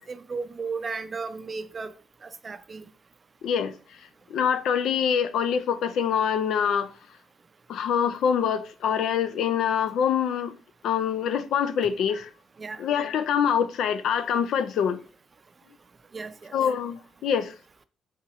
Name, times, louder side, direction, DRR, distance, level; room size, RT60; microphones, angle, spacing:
voice 1, 0.1-1.9 2.2-2.9 12.6-12.8 16.1-16.5, right 4 dB, 35° right, 0.4 m, -35 dB
voice 2, 3.4-3.7 4.3-6.9 7.7-10.5 10.8-12.3 12.8-15.0 16.5-17.5, left 8 dB, 75° left, 0.4 m, -25 dB
4.4 x 3.7 x 3.0 m
cardioid pair, 90°, 0 cm